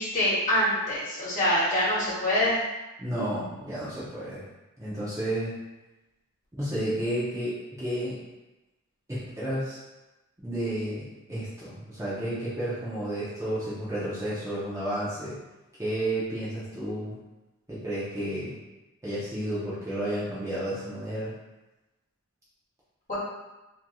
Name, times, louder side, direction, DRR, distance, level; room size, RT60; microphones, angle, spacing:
voice 1, 0.0-2.6 23.1-23.2, left 1 dB, 35° left, -10 dB, 1.2 m, -25 dB
voice 2, 3.0-4.4 4.8-5.5 6.6-8.2 9.1-9.8 10.4-15.4 15.8-17.2 17.7-18.6 19.0-21.3, right 1 dB, 15° right, -10 dB, 0.6 m, -31 dB
3.1 x 2.6 x 2.3 m, 1.0 s
head